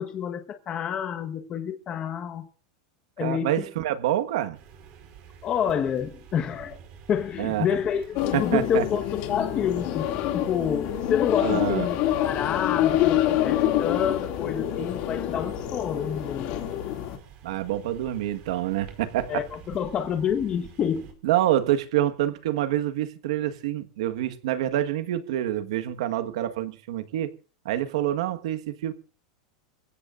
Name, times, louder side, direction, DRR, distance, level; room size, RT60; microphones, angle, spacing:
voice 1, 0.0-2.5 3.2-3.7 5.4-6.8 7.1-16.6 19.3-21.1, left 8 dB, 30° left, 1.4 m, -28 dB
voice 2, 3.2-4.6 7.4-7.7 8.3-8.8 11.4-11.9 17.4-19.4 21.2-27.3 27.6-28.9, right 12 dB, 75° right, 1.6 m, -26 dB
sound 1, 4.5-21.1, right 8 dB, 45° right, 4.9 m, -48 dB
sound 2, 8.2-17.2, left 12 dB, 50° left, 2.6 m, -26 dB
27.0 x 16.0 x 2.6 m
supercardioid pair, 145°, 3 cm